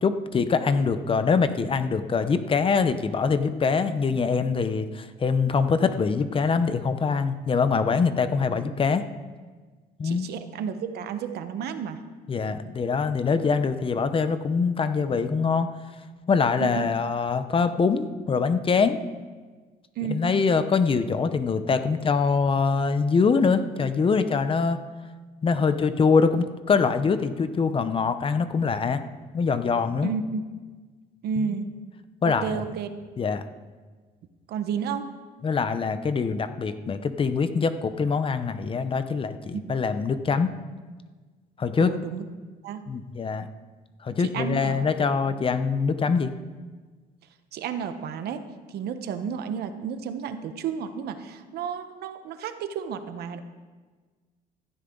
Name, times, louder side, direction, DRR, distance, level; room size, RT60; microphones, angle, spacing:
voice 1, 0.0-9.0 10.0-10.3 12.3-15.7 16.3-19.0 20.1-24.8 25.4-29.0 29.3-30.1 31.4-31.5 32.2-32.6 33.2-33.4 35.4-40.5 41.6-41.9 42.9-43.5 44.0-46.3, left 5 dB, 30° left, 10 dB, 0.8 m, -24 dB
voice 2, 10.0-12.0 12.5-12.6 16.6-16.9 20.0-20.2 30.0-30.4 31.2-31.7 32.2-32.9 34.5-35.1 39.5-39.7 41.8-42.3 42.6-42.8 44.2-44.9 45.3-45.4 47.5-48.4 48.7-53.4, right 7 dB, 70° right, 9 dB, 1.2 m, -32 dB
15.5 x 14.0 x 4.0 m, 1.4 s
cardioid pair, 110°, 17 cm